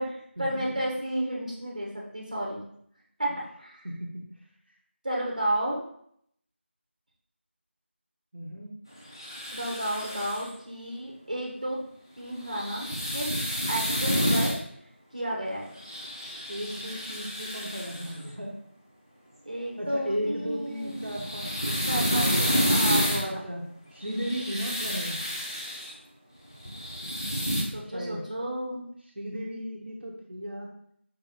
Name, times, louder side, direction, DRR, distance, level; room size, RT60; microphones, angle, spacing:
voice 1, 0.0-2.6 3.2-3.8 5.0-5.8 9.5-11.8 12.2-13.3 13.7-14.6 15.1-15.6 19.4-21.2 21.9-23.4 27.7-28.9, right 1 dB, 35° right, -3 dB, 1.0 m, -32 dB
voice 2, 3.8-4.2 8.3-8.7 16.5-18.5 19.8-22.6 23.2-23.7 23.9-25.2 27.8-28.2 29.2-30.7, equal, 60° right, -2 dB, 0.8 m, -35 dB
sound 1, 9.1-10.5 12.4-14.6 15.8-18.1 20.9-23.2 24.0-25.9 26.5-27.6, equal, 20° left, 0.5 m, -29 dB
5.3 x 3.0 x 2.9 m, 0.68 s
figure-of-eight pair, 170°, 7 cm